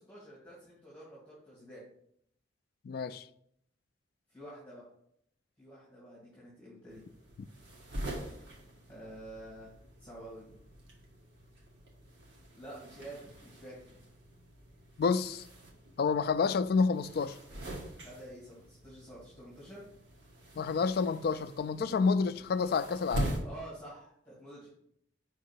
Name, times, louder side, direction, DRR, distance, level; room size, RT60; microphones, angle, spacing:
voice 1, 0.0-1.8 4.3-4.8 5.6-7.0 8.9-10.6 12.5-14.0 17.9-19.9 23.4-24.7, right 1 dB, 10° left, 2.0 m, -49 dB
voice 2, 2.8-3.3 15.0-15.4 16.0-17.4 20.6-23.3, left 5 dB, 55° left, 0.3 m, -29 dB
sound 1, 6.9-23.4, right 1 dB, 75° right, 1.5 m, -44 dB
5.3 x 3.7 x 5.8 m
head